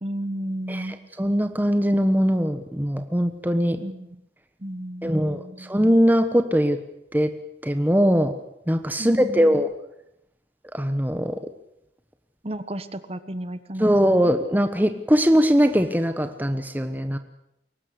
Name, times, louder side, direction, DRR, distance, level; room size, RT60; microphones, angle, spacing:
voice 1, 0.0-1.0 3.8-4.1 4.6-5.7 9.0-9.6 12.4-14.3, right 1 dB, 35° right, 12 dB, 1.2 m, -33 dB
voice 2, 0.7-3.8 5.0-6.8 7.1-7.3 7.6-8.4 8.7-9.7 10.7-11.4 13.8-17.2, equal, 10° right, 8 dB, 1.1 m, -21 dB
23.0 x 18.5 x 8.3 m, 0.83 s
head